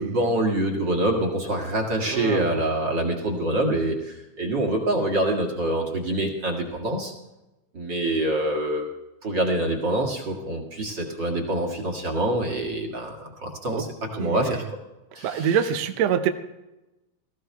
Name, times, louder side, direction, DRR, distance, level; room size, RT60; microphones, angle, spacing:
voice 1, 0.0-7.1 7.7-8.9 9.2-13.9 14.1-14.6 15.1-15.6, right 1 dB, 40° right, 0 dB, 2.1 m, -25 dB
voice 2, 2.0-2.5 13.7-13.8 14.2-14.6 15.2-16.3, right 8 dB, 70° right, 8 dB, 1.7 m, -25 dB
17.5 x 14.5 x 3.4 m, 0.99 s
omnidirectional pair, 3.8 m